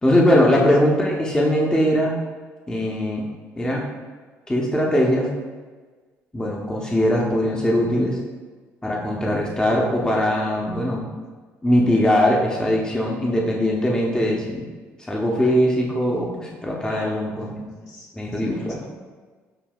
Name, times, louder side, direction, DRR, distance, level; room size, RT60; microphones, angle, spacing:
voice 1, 0.0-2.1 2.7-3.3 3.6-3.8 4.5-5.3 6.3-8.2 8.8-11.0 11.6-14.7 15.1-17.7 18.1-18.8, equal, 15° left, -2 dB, 0.7 m, -21 dB
voice 2, 16.8-17.3 17.8-18.9, left 1 dB, 60° left, -3 dB, 1.2 m, -44 dB
6.7 x 2.7 x 2.3 m, 1.4 s
supercardioid pair, 65°, 6 cm